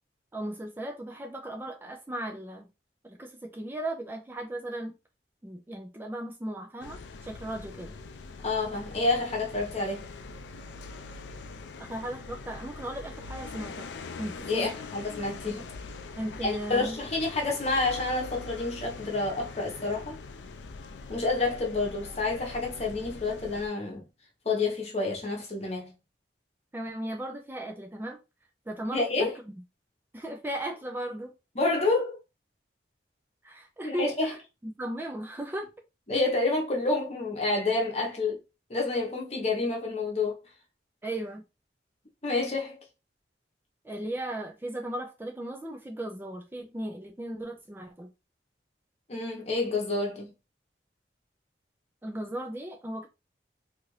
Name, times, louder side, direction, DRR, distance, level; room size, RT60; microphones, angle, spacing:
voice 1, 0.3-2.7 3.0-4.9 5.4-7.9 11.8-13.9 14.2-14.8 16.2-17.0 26.7-28.2 28.7-29.5 30.1-31.3 33.4-35.7 41.0-41.4 43.8-48.1 52.0-53.1, right 1 dB, 10° right, 0.3 m, -36 dB
sound 1, 6.8-23.7, left 4 dB, 80° left, 0.4 m, -43 dB
voice 2, 8.4-10.1 14.5-15.7 16.4-20.2 21.1-24.0 24.4-25.9 28.9-29.3 31.5-32.2 33.8-34.3 36.1-38.4 38.7-40.4 42.2-42.9 49.1-50.3, left 3 dB, 35° left, 0.9 m, -29 dB
2.8 x 2.4 x 3.0 m
head